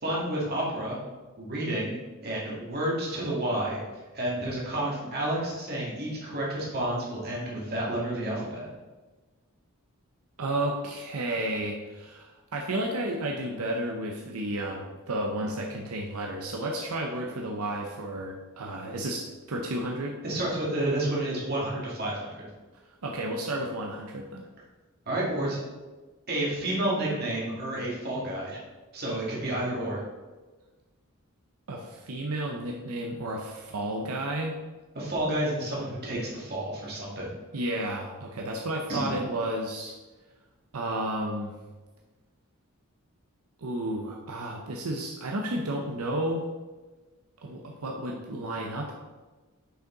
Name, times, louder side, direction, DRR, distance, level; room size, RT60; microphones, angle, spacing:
voice 1, 0.0-1.0 1.4-2.0 2.2-3.8 4.1-8.7 20.2-22.5 25.1-25.6 26.3-28.6 28.9-30.0 35.0-37.3 38.9-39.1, right 1 dB, 45° right, -5 dB, 2.1 m, -30 dB
voice 2, 10.4-20.2 23.0-24.5 31.7-34.6 37.5-39.9 40.7-41.5 43.6-46.4 47.4-48.9, right 1 dB, 85° right, 0 dB, 0.7 m, -32 dB
6.6 x 5.2 x 3.8 m, 1.2 s
head